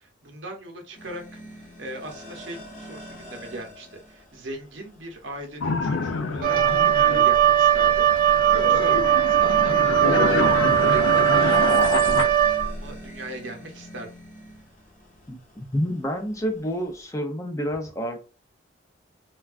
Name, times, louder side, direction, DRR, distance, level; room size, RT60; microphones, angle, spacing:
voice 1, 0.0-9.0 9.3-12.3 12.7-14.1, right 1 dB, 70° right, 2 dB, 0.8 m, -39 dB
sound 1, 0.9-17.1, equal, 45° left, 0.8 m, -46 dB
sound 2, 5.6-12.2, left 4 dB, 85° left, 0.4 m, -27 dB
Wind instrument woodwind instrument, 6.4-13.0, right 11 dB, 50° right, 0.3 m, -19 dB
voice 2, 15.3-18.2, equal, 15° left, 4 dB, 0.5 m, -29 dB
3.3 x 2.3 x 2.4 m, 0.32 s
head